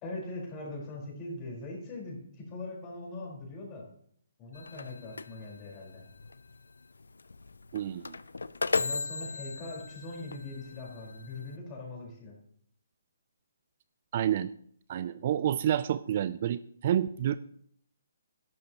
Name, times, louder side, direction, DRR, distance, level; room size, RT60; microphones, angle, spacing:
voice 1, 0.0-3.9 4.4-6.0 8.8-12.4, left 2 dB, 25° left, -2 dB, 4.7 m, -41 dB
sound 1, 4.5-11.6, left 4 dB, 85° left, 0.5 m, -37 dB
voice 2, 7.7-8.2 14.1-14.5 14.9-17.4, right 10 dB, 45° right, 15 dB, 0.4 m, -29 dB
12.0 x 11.5 x 3.0 m, 0.63 s
hypercardioid pair, 150°, 0 cm